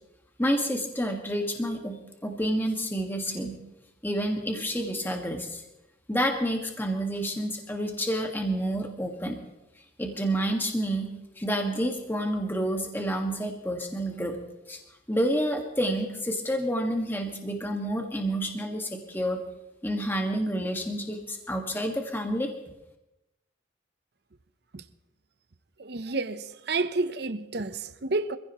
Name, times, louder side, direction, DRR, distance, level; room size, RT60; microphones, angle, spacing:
voice 1, 0.4-3.6 4.0-5.6 6.1-9.4 10.0-14.4 14.7-14.8 15.1-19.4 19.8-22.5, equal, 10° left, 1.7 m, -29 dB
voice 2, 25.8-28.4, right 3 dB, 60° right, 0.8 m, -30 dB
26.0 x 16.0 x 3.0 m
head